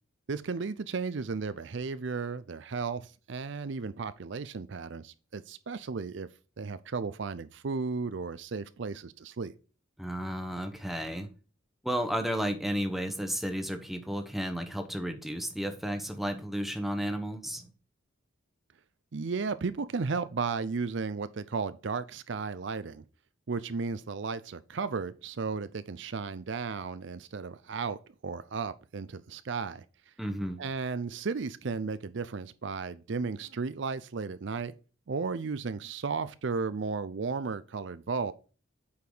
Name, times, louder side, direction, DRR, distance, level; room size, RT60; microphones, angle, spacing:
voice 1, 0.3-6.3 6.6-9.5 19.1-23.0 23.5-29.8 30.6-34.7 35.1-38.3, right 4 dB, 60° right, 0.5 m, -34 dB
voice 2, 10.0-11.3 11.8-17.7 30.2-30.6, equal, ahead, 1.0 m, -33 dB
8.4 x 4.8 x 3.9 m
head